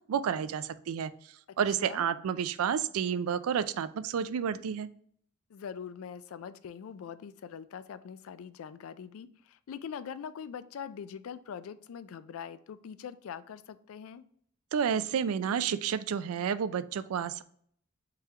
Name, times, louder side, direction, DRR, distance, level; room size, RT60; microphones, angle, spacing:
voice 1, 0.1-1.1 1.6-4.9 14.7-17.4, right 7 dB, 80° right, 14 dB, 0.3 m, -30 dB
voice 2, 5.5-14.2, left 7 dB, 75° left, 14 dB, 0.3 m, -43 dB
4.4 x 3.8 x 2.8 m, 0.63 s
head